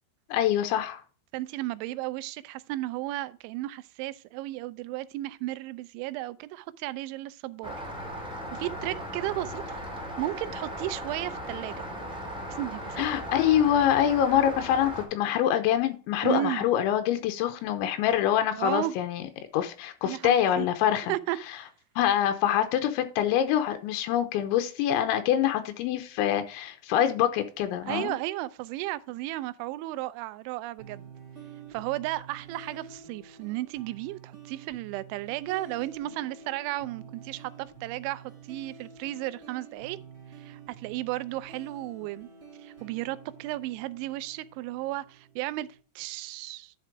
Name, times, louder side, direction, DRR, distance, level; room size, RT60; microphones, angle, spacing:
voice 1, 0.3-1.0 13.0-19.2 19.5-21.1 22.0-28.1, left 10 dB, 90° left, 3.2 m, -25 dB
voice 2, 1.3-7.8 8.5-9.8 10.2-11.8 12.6-13.2 16.2-16.6 18.5-19.0 20.0-20.7 21.1-21.4 27.9-31.1 31.7-40.0 40.4-42.3 42.6-45.7 46.0-46.7, right 16 dB, 85° right, 3.0 m, -34 dB
Rain, 7.6-15.0, equal, 5° right, 0.6 m, -37 dB
sound 1, 30.8-45.8, right 5 dB, 35° right, 0.8 m, -48 dB
10.5 x 4.6 x 4.9 m
omnidirectional pair, 5.3 m